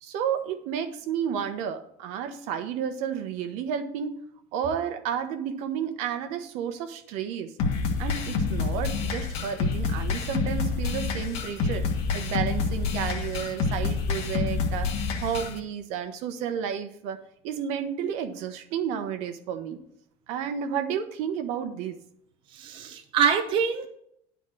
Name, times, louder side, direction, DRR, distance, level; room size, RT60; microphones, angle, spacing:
voice 1, 0.0-4.1 4.5-7.5 8.0-19.8 20.3-22.0, right 8 dB, 75° right, 8 dB, 1.1 m, -31 dB
sound 1, 7.6-15.6, left 4 dB, 55° left, 1.4 m, -28 dB
voice 2, 22.6-23.9, right 7 dB, 45° right, 5 dB, 0.8 m, -24 dB
10.0 x 4.1 x 7.5 m, 0.73 s
cardioid pair, 170°, 12 cm